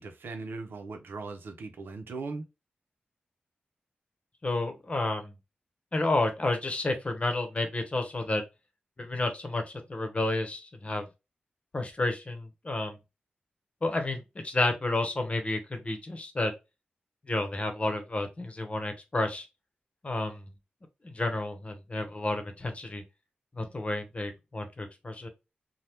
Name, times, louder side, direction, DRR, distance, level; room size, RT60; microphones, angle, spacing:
voice 1, 0.0-2.4, right 3 dB, 90° right, 0.6 m, -39 dB
voice 2, 4.4-5.3 5.9-8.4 9.0-9.6 9.9-11.1 11.7-13.0 13.8-16.5 17.3-19.5 20.0-20.5 21.0-23.0 23.5-25.3, left 2 dB, 35° left, 0.8 m, -31 dB
2.8 x 2.1 x 3.4 m
wide cardioid pair, 80°, 4 cm